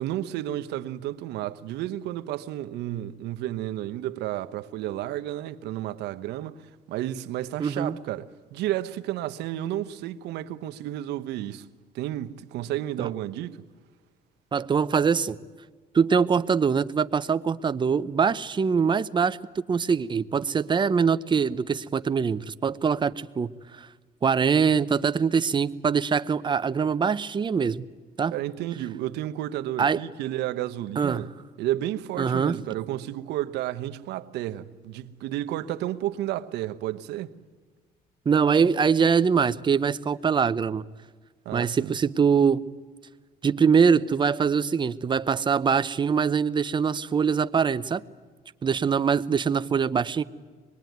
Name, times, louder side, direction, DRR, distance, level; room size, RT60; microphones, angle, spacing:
voice 1, 0.0-6.6 6.9-11.7 11.9-13.6 28.3-31.3 31.6-37.3 41.4-41.9, right 13 dB, 80° right, 1.0 m, -32 dB
voice 2, 7.6-8.0 13.0-13.1 14.5-15.4 15.9-23.5 23.8-23.9 24.2-27.9 28.2-28.3 29.8-30.0 31.0-31.3 32.2-32.6 38.3-40.8 41.5-42.6 43.4-48.0 48.6-50.2, right 6 dB, 30° right, 0.7 m, -23 dB
25.0 x 21.5 x 9.4 m
cardioid pair, 110°, 17 cm